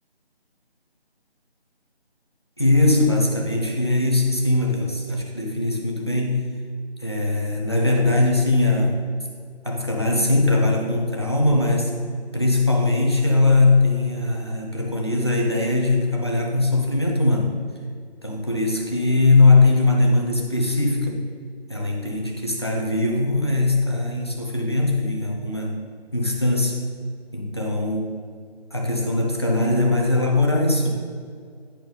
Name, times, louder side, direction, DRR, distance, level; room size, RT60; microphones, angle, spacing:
voice 1, 2.6-6.4 7.0-9.0 9.6-11.9 12.3-17.5 18.2-21.2 21.7-25.8 26.1-26.8 27.3-28.2 28.7-30.9, left 2 dB, 25° left, 0 dB, 0.6 m, -20 dB
10.5 x 4.5 x 3.9 m, 2.1 s
figure-of-eight pair, 170°, 32 cm